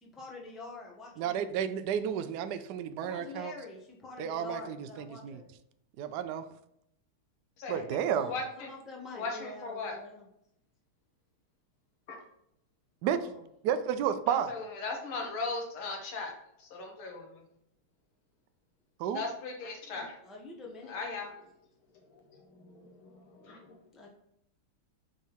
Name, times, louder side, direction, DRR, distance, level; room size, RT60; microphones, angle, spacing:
voice 1, 0.0-1.6 3.0-5.5 8.0-10.3 13.2-13.4 20.2-21.2 23.9-24.1, left 3 dB, ahead, -2 dB, 0.5 m, -46 dB
voice 2, 1.2-3.5 4.2-5.4 6.0-6.5 7.7-8.3 13.0-13.3 13.6-14.5 19.0-19.2, right 9 dB, 85° right, 10 dB, 0.9 m, -32 dB
voice 3, 8.3-8.7 9.1-10.0 14.3-16.3 16.6-17.4 19.1-20.1 20.8-21.4 22.3-23.8, left 3 dB, 75° left, 2 dB, 2.2 m, -38 dB
5.3 x 3.6 x 5.7 m, 0.76 s
omnidirectional pair, 2.3 m